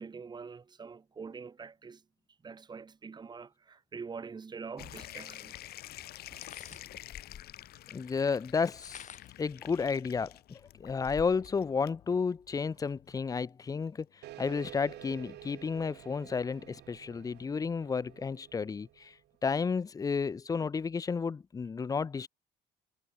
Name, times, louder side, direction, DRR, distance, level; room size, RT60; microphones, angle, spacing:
voice 1, 0.0-2.0 2.4-5.5, right 5 dB, 25° right, 1.4 m, -44 dB
sound 1, 4.8-16.1, left 14 dB, 70° left, 1.2 m, -50 dB
sound 2, 6.3-7.6 8.6-9.4 10.1-10.2 10.5-11.6, left 8 dB, 45° left, 4.3 m, -49 dB
voice 2, 7.9-9.1 9.4-19.2 19.4-22.3, left 5 dB, 20° left, 0.5 m, -32 dB
sound 3, 14.2-19.3, right 17 dB, 80° right, 5.9 m, -50 dB
cardioid pair, 110°, 17 cm